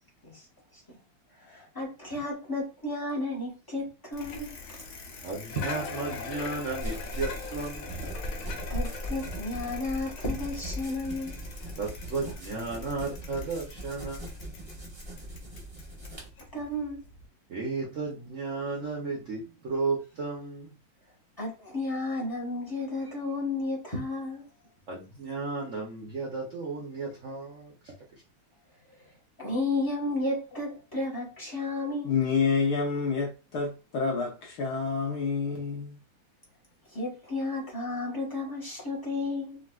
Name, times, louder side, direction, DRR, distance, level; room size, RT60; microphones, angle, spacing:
voice 1, 1.4-4.5 8.7-11.4 16.5-17.0 21.4-24.5 29.4-32.1 36.9-39.6, left 2 dB, 20° left, 0.5 m, -32 dB
Bicycle, 4.1-17.3, left 4 dB, 85° left, 1.7 m, -42 dB
voice 2, 5.2-8.1 11.8-14.2 17.5-20.7 24.9-27.9, right 3 dB, 70° right, 0.7 m, -34 dB
sound 1, 6.8-16.3, equal, 25° right, 0.5 m, -39 dB
voice 3, 32.0-36.0, left 5 dB, 70° left, 1.0 m, -28 dB
3.9 x 2.4 x 2.3 m
omnidirectional pair, 2.3 m